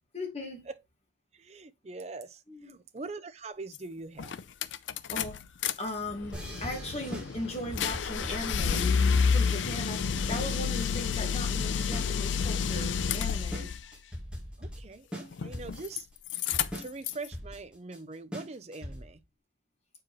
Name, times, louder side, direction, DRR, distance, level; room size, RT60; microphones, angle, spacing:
voice 1, 0.1-0.7 2.5-2.8 5.1-5.4 5.8-9.0 9.3-13.7, left 1 dB, 35° left, 1.9 m, -38 dB
voice 2, 1.3-4.3 14.6-16.1 16.8-19.2, right 3 dB, 35° right, 0.5 m, -43 dB
sound 1, 3.7-3.8 4.2-5.7 6.1-13.8 15.3-16.0 16.3-17.3, left 6 dB, 80° left, 0.4 m, -29 dB
sound 2, 6.3-19.2, equal, 5° right, 2.1 m, -41 dB
7.4 x 4.8 x 3.0 m
head